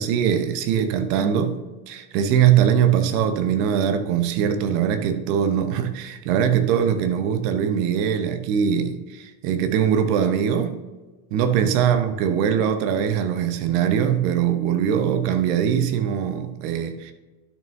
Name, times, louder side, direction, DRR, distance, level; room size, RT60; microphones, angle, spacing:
voice 1, 0.0-1.6 1.9-10.8 11.3-17.1, right 8 dB, 45° right, 0.9 m, -21 dB
12.0 x 6.5 x 2.7 m
figure-of-eight pair, 90°, 0 cm